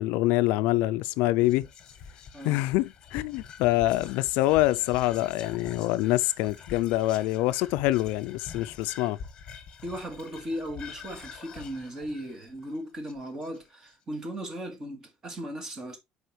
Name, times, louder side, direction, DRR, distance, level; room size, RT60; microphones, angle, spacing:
voice 1, 0.0-1.7 2.4-9.2, left 17 dB, 75° left, 0.4 m, -25 dB
Whispering, 1.4-13.9, left 6 dB, 30° left, 1.3 m, -45 dB
voice 2, 9.8-16.0, equal, 20° right, 1.9 m, -37 dB
7.9 x 4.9 x 3.2 m
cardioid pair, 180°, 3 cm